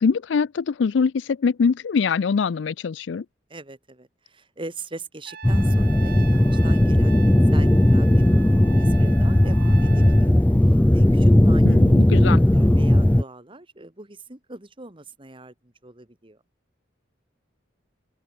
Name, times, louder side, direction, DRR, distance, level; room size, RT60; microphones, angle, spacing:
voice 1, 0.0-3.3 11.6-12.4, left 5 dB, 70° left, 0.4 m, -23 dB
voice 2, 3.5-8.3 8.7-11.8 12.3-16.4, right 2 dB, 25° right, 2.0 m, -41 dB
Trumpet, 5.3-10.3, right 6 dB, 50° right, 1.2 m, -41 dB
sound 1, 5.4-13.2, left 1 dB, 10° left, 0.4 m, -17 dB
open air
head